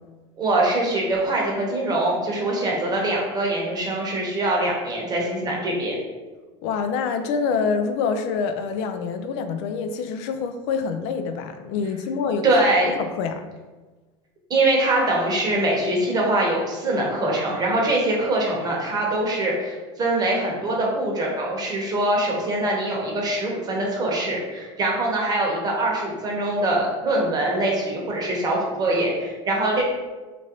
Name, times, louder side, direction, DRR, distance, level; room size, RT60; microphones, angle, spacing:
voice 1, 0.4-6.0 12.4-12.9 14.5-29.9, right 1 dB, 25° right, -2 dB, 0.9 m, -23 dB
voice 2, 6.6-12.5 12.9-13.4, left 5 dB, 70° left, 7 dB, 0.4 m, -26 dB
3.0 x 2.5 x 2.9 m, 1.3 s
supercardioid pair, 110°, 15 cm